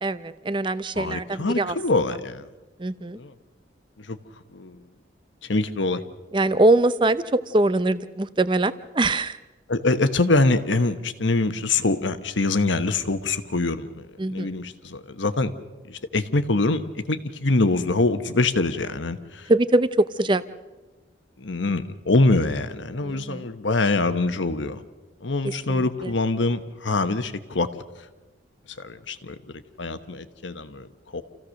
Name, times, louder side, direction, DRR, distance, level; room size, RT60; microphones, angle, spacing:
voice 1, 0.0-1.7 2.8-3.2 6.3-9.4 14.2-14.5 19.5-20.4 23.0-23.4 25.7-25.8, right 2 dB, 25° right, 14 dB, 0.6 m, -22 dB
voice 2, 0.9-2.5 3.1-3.3 4.0-4.2 4.5-4.8 5.4-6.0 9.7-14.0 14.3-15.5 15.9-19.5 21.4-24.8 25.2-27.7 28.8-29.4 29.8-31.2, left 2 dB, 80° left, 10 dB, 1.2 m, -24 dB
28.0 x 15.5 x 6.5 m, 1.2 s
head